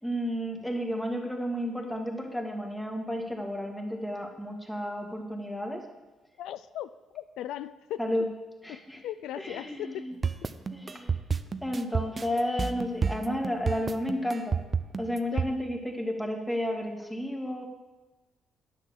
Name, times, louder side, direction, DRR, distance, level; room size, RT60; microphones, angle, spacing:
voice 1, 0.0-5.9 8.0-8.3 8.6-9.0 9.4-10.2 10.7-11.2 11.6-14.6 15.0-17.7, equal, 5° left, 2 dB, 1.9 m, -32 dB
voice 2, 6.4-8.1 8.7-10.1 15.3-15.5, left 12 dB, 85° left, 14 dB, 0.3 m, -38 dB
sound 1, 10.2-15.5, right 5 dB, 35° right, 0.6 m, -29 dB
10.0 x 6.5 x 7.4 m, 1.1 s
cardioid pair, 90°, 0 cm